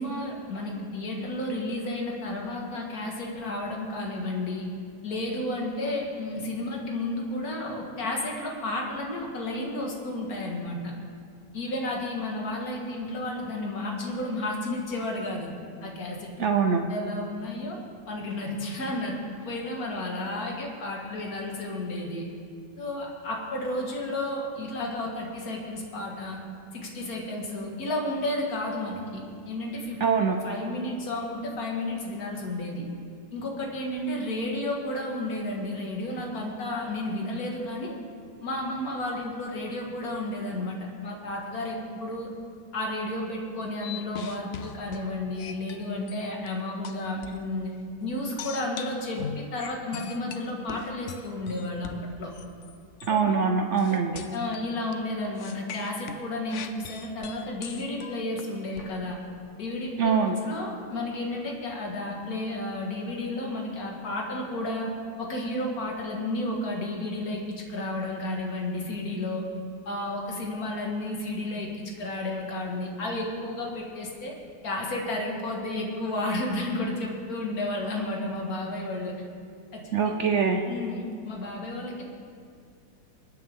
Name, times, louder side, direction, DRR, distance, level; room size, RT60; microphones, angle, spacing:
voice 1, 0.0-4.8 5.0-10.9 11.5-15.5 15.8-16.3 16.7-17.8 18.1-22.3 22.8-26.4 26.7-30.0 30.4-32.9 33.3-37.9 38.4-42.3 42.7-47.7 48.0-52.3 53.1-53.3 53.9-54.0 54.3-59.2 59.6-64.9 65.2-69.4 69.9-71.7 72.0-74.3 74.6-79.1 79.7-80.2 80.7-82.0, left 1 dB, 50° left, -1 dB, 2.2 m, -32 dB
voice 2, 16.4-16.9 30.0-30.4 53.0-54.2 60.0-60.4 79.9-80.6, right 6 dB, 70° right, 4 dB, 0.6 m, -23 dB
sound 1, 43.8-46.5 46.8-47.5 48.4-52.7 53.0-53.2 53.8-54.9 55.4-59.0, left 7 dB, 70° left, 0.7 m, -40 dB
23.0 x 9.3 x 3.6 m, 2.3 s
omnidirectional pair, 2.0 m